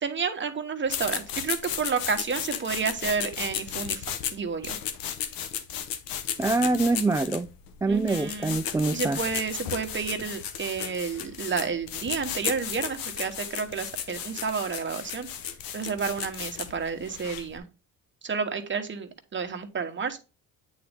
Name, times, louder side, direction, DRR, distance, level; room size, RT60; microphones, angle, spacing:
voice 1, 0.0-4.0 4.3-4.8 7.9-8.6 8.9-15.3 15.7-17.6 18.2-20.2, right 5 dB, 35° right, 1.2 m, -30 dB
sound 1, 0.9-17.6, left 9 dB, 85° left, 0.9 m, -34 dB
voice 2, 6.4-7.5 7.8-9.2, right 3 dB, 10° right, 0.3 m, -25 dB
8.5 x 4.1 x 3.5 m
cardioid pair, 85°, 34 cm